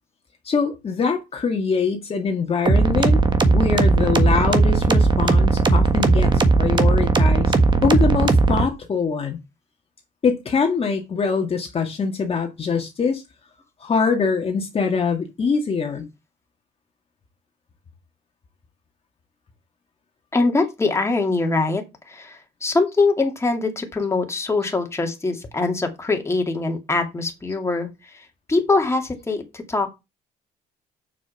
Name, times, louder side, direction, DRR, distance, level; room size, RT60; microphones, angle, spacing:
voice 1, 0.4-3.2 3.5-7.5 7.8-9.4 10.2-13.2 13.8-16.1, left 5 dB, 35° left, 1.8 m, -23 dB
sound 1, 2.7-8.6, right 3 dB, 25° right, 1.6 m, -17 dB
voice 2, 20.3-29.9, left 3 dB, 15° left, 2.4 m, -23 dB
7.3 x 6.4 x 5.7 m
cardioid pair, 110°, 17 cm